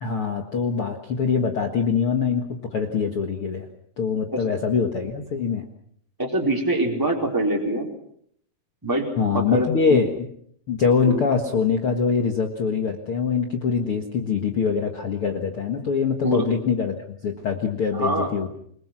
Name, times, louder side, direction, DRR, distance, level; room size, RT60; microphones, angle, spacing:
voice 1, 0.0-3.7 4.0-5.6 9.2-10.3 10.7-18.5, left 5 dB, 50° left, 3 dB, 1.8 m, -24 dB
voice 2, 6.2-7.9 8.8-9.1 9.3-10.0 11.0-11.2 16.2-16.4 17.9-18.3, right 1 dB, 5° right, 0 dB, 4.0 m, -24 dB
28.5 x 21.0 x 6.2 m, 0.67 s
omnidirectional pair, 4.6 m